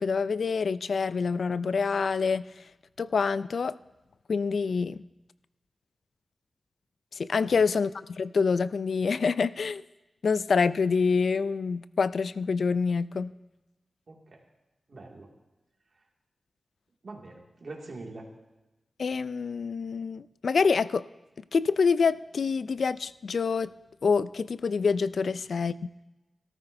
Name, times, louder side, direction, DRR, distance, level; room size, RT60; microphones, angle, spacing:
voice 1, 0.0-2.4 3.0-3.8 4.3-5.0 7.1-9.8 10.2-13.3 19.0-21.1 21.5-23.7 24.0-25.9, left 5 dB, 75° left, 16 dB, 0.3 m, -26 dB
voice 2, 14.1-14.4 14.9-15.3 17.0-18.3 25.2-25.3, right 2 dB, 55° right, -1 dB, 2.1 m, -44 dB
17.5 x 13.5 x 2.6 m, 1.1 s
wide cardioid pair, 130°, 0 cm